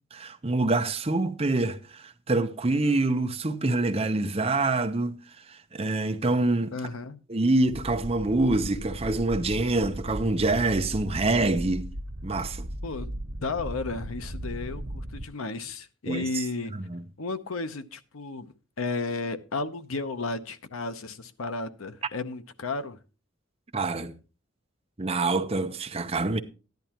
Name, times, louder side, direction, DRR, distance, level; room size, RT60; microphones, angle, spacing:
voice 1, 0.1-5.2 5.5-6.7 7.3-11.9 12.2-12.7 16.1-16.2 16.7-17.0 23.7-24.1 25.0-26.4, right 2 dB, 30° right, 0.7 m, -26 dB
voice 2, 6.7-7.2 12.8-13.1 13.4-16.7 17.2-23.0, left 3 dB, 85° left, 0.8 m, -33 dB
sound 1, 7.6-15.2, equal, 80° right, 1.4 m, -37 dB
14.0 x 10.5 x 2.9 m
head